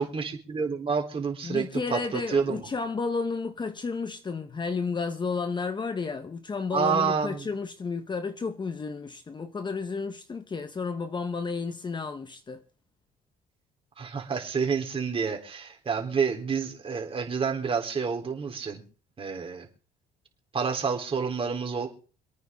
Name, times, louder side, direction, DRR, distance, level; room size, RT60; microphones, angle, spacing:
voice 1, 0.0-2.6 6.7-7.4 14.0-18.8 19.2-19.7 20.5-21.9, right 5 dB, 35° right, 3.7 m, -28 dB
voice 2, 1.4-12.6, left 4 dB, 25° left, 1.2 m, -32 dB
27.0 x 9.3 x 3.7 m
cardioid pair, 110°, 17 cm